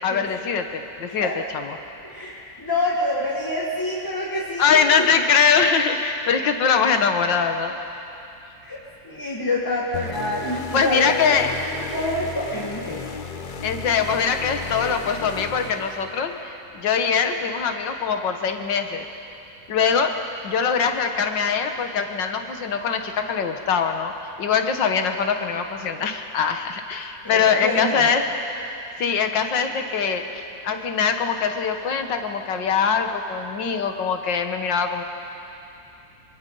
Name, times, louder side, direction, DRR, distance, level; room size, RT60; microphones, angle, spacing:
voice 1, 0.0-1.8 4.6-7.8 10.7-11.5 13.6-19.1 19.7-20.1 20.4-24.1 24.4-28.3 29.0-35.0, left 6 dB, 80° left, 6 dB, 1.9 m, -22 dB
voice 2, 2.0-5.1 8.6-8.8 9.0-11.3 11.8-13.0 27.2-28.1, left 1 dB, 10° left, -4 dB, 1.7 m, -27 dB
sound 1, 9.9-16.4, left 5 dB, 40° left, 0.8 m, -35 dB
24.0 x 23.5 x 5.5 m, 2.8 s
omnidirectional pair, 1.9 m